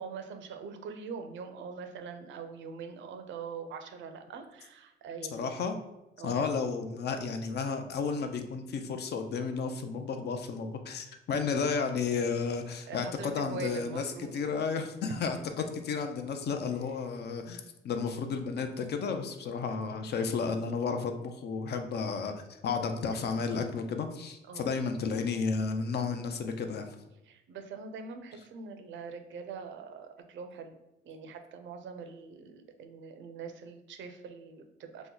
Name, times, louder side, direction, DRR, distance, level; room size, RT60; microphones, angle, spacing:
voice 1, 0.0-5.5 6.2-6.4 12.9-14.3 15.1-15.2 24.4-24.7 27.2-30.8 31.0-35.1, right 5 dB, 70° right, 6 dB, 0.5 m, -43 dB
voice 2, 5.3-5.8 6.2-14.0 14.3-15.4 15.9-26.9, left 5 dB, 55° left, 6 dB, 0.5 m, -32 dB
2.9 x 2.1 x 3.7 m, 0.92 s
cardioid pair, 90°, 20 cm